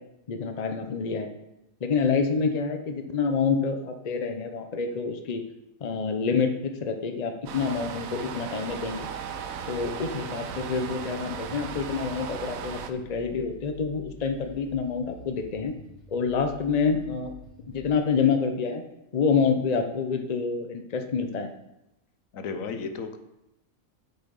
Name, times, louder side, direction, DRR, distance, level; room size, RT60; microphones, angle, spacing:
voice 1, 0.3-1.3 1.8-5.4 5.8-9.1 9.7-15.7 16.1-17.4 17.7-18.8 19.1-21.5, left 5 dB, 35° left, 5 dB, 0.8 m, -27 dB
sound 1, 7.5-12.9, right 7 dB, 85° right, 1.1 m, -37 dB
sound 2, 8.7-18.0, left 1 dB, 55° left, 1.9 m, -49 dB
Keyboard (musical), 9.0-11.6, right 17 dB, 70° right, 1.0 m, -47 dB
voice 2, 22.3-23.2, left 5 dB, 75° left, 8 dB, 1.2 m, -33 dB
8.6 x 6.1 x 5.4 m, 0.90 s
omnidirectional pair, 1.4 m